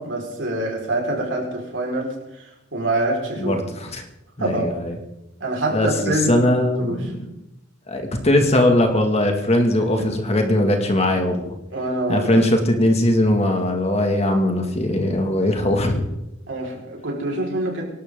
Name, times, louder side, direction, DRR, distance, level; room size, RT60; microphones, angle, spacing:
voice 1, 0.0-3.6 4.4-4.7 5.4-6.5 6.8-7.1 10.0-10.1 11.7-12.5 16.5-17.8, right 2 dB, 70° right, -1 dB, 5.0 m, -25 dB
voice 2, 3.4-4.0 4.4-5.0 5.7-7.2 7.9-11.6 12.1-16.0, left 1 dB, 35° left, 3 dB, 2.3 m, -20 dB
24.5 x 12.5 x 3.9 m, 0.88 s
head